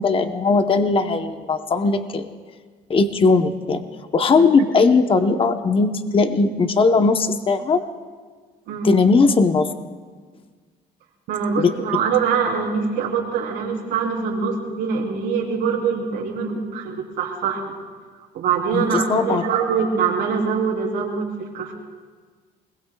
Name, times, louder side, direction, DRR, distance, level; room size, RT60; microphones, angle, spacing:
voice 1, 0.0-2.3 2.9-3.8 4.1-7.8 8.8-9.7 11.6-11.7 18.7-19.4, left 4 dB, 30° left, 7 dB, 0.9 m, -18 dB
voice 2, 11.3-17.8 18.3-21.7, right 6 dB, 80° right, -4 dB, 3.5 m, -23 dB
27.5 x 21.5 x 2.3 m, 1.6 s
cardioid pair, 110°, 17 cm